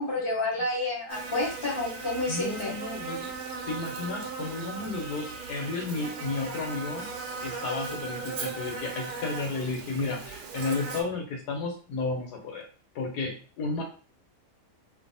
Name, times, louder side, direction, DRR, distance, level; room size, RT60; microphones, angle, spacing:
voice 1, 0.0-2.7, left 2 dB, 40° left, -5 dB, 1.0 m, -29 dB
Buzz, 1.1-11.0, right 4 dB, 75° right, 1.1 m, -37 dB
voice 2, 2.3-3.3 3.7-7.1 7.4-12.7 12.9-13.8, left 3 dB, 80° left, 3 dB, 1.3 m, -33 dB
2.6 x 2.4 x 2.6 m, 0.38 s
omnidirectional pair, 1.7 m